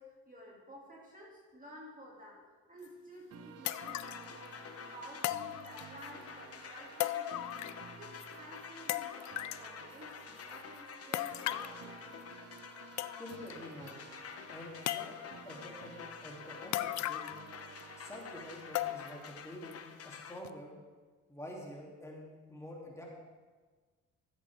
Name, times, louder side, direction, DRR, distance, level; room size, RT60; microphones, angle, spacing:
voice 1, 0.0-7.6 8.0-12.0, equal, 25° right, -2 dB, 2.4 m, -52 dB
sound 1, 2.8-2.9 3.7-4.3 5.2-6.1 7.0-7.9 8.2-8.3 8.9-9.7 11.1-11.8 12.6-12.7 13.0-13.5 13.9-14.0 14.9-15.4 16.7-17.5 17.8-17.9 18.8-19.3 19.7-19.8 20.4-20.5, left 14 dB, 70° left, 0.5 m, -37 dB
sound 2, 3.3-19.3, right 8 dB, 55° right, 0.8 m, -54 dB
sound 3, 3.6-20.4, left 6 dB, 50° left, 0.9 m, -49 dB
voice 2, 13.2-14.0 14.5-15.2 15.4-17.4 18.0-20.7 21.3-23.0, left 1 dB, 10° left, -3 dB, 2.8 m, -47 dB
15.0 x 8.2 x 3.5 m, 1.4 s
cardioid pair, 90°, 30 cm